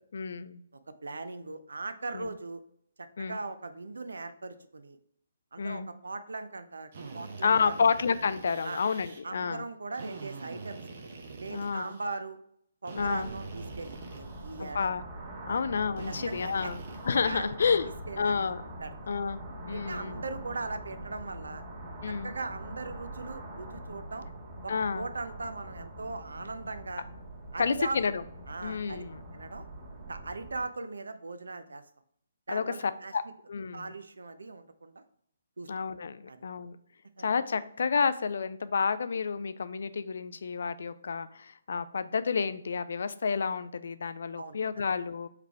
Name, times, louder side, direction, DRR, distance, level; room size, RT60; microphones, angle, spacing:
voice 1, 0.1-0.6 2.1-2.3 3.2-3.4 5.6-5.9 7.4-9.6 11.5-11.9 13.0-13.3 14.6-15.0 15.5-17.9 18.2-18.6 19.1-19.4 19.7-20.2 22.0-22.3 24.7-25.1 27.6-28.2 28.6-29.2 32.5-32.6 33.1-33.2 33.5-33.9 35.7-36.8 37.2-45.3, left 5 dB, 60° left, 13 dB, 0.3 m, -30 dB
voice 2, 1.0-2.6 3.0-5.0 5.5-7.8 8.6-8.8 9.2-10.8 11.4-12.4 12.8-14.9 15.5-15.6 16.1-16.8 17.2-17.6 18.1-18.3 18.8-18.9 19.7-21.6 22.1-24.3 24.6-27.1 27.5-28.1 28.5-29.0 29.3-29.7 30.1-31.8 32.5-33.1 33.7-35.0 35.6-35.7 36.3-36.4 37.2-37.3 44.4-44.6, right 3 dB, 70° right, 11 dB, 0.5 m, -39 dB
Drill, 6.9-9.2 9.9-12.2 12.9-14.7 15.9-17.3, right 4 dB, 45° right, 0.8 m, -45 dB
sound 1, 13.0-30.7, right 1 dB, 30° right, 1.9 m, -43 dB
4.9 x 3.2 x 3.2 m, 0.68 s
figure-of-eight pair, 135°, 0 cm